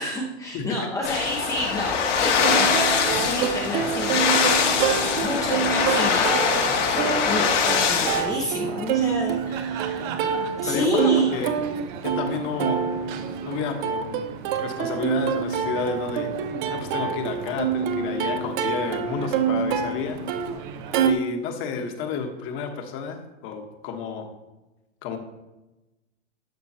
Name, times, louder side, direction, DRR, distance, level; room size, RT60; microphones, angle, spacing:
voice 1, 0.0-10.1 10.6-11.4, left 1 dB, 10° left, -1 dB, 0.7 m, -30 dB
voice 2, 0.5-1.1 10.7-11.5 12.0-12.8 13.4-14.3 14.6-16.3 16.7-20.2 21.0-24.3 25.0-25.2, left 5 dB, 35° left, 5 dB, 1.3 m, -31 dB
sound 1, 1.0-8.2, left 6 dB, 75° left, 2.2 m, -22 dB
Plucked string instrument, 2.2-21.1, right 7 dB, 40° right, 0.8 m, -27 dB
12.0 x 6.1 x 2.9 m, 1.0 s
hypercardioid pair, 135°, 37 cm